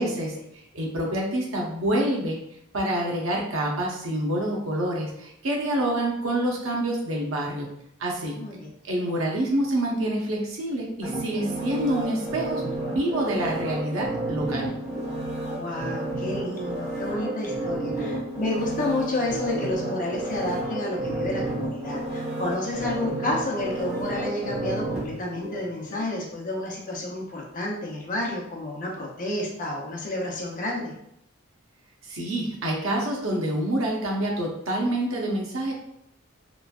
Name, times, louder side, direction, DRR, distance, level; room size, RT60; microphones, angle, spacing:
voice 1, 0.0-2.4 2.7-7.7 8.0-8.4 8.8-14.7 32.0-35.7, right 1 dB, 85° right, -1 dB, 0.7 m, -27 dB
voice 2, 8.4-8.7 15.5-30.9, left 1 dB, 40° left, -2 dB, 0.7 m, -30 dB
sound 1, 11.0-26.1 26.5-26.6, right 1 dB, 35° right, 0.9 m, -31 dB
3.1 x 2.2 x 2.4 m, 0.76 s
head